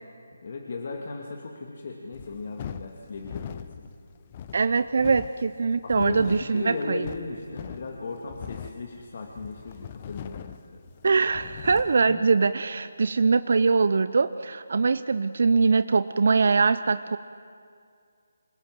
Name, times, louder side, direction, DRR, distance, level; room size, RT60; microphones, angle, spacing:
voice 1, 0.4-3.9 5.8-10.9 12.1-12.2, left 3 dB, 50° left, 1 dB, 2.2 m, -36 dB
sound 1, 2.1-12.0, left 9 dB, 30° left, 0.9 m, -42 dB
voice 2, 4.5-7.1 11.0-17.2, right 4 dB, 55° right, 13 dB, 0.6 m, -22 dB
27.5 x 19.0 x 7.6 m, 2.3 s
figure-of-eight pair, 150°, 0 cm